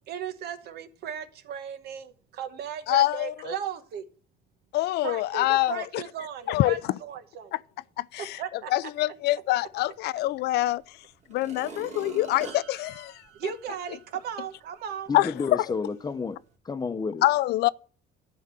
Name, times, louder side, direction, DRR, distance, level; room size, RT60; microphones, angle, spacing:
voice 1, 0.1-4.0 5.0-7.5 8.2-8.7 13.3-15.1, right 8 dB, 70° right, 1.1 m, -36 dB
voice 2, 2.9-3.5 4.7-6.0 6.5-7.0 7.5-7.6 8.0-13.5 15.1-15.7 17.2-17.7, left 16 dB, 75° left, 0.4 m, -26 dB
sound 1, 10.5-10.6 11.2-14.1 14.6-14.7, right 4 dB, 45° right, 2.5 m, -44 dB
voice 3, 15.1-16.4 16.6-17.2, left 4 dB, 25° left, 0.7 m, -30 dB
12.0 x 4.0 x 7.5 m
cardioid pair, 110°, 17 cm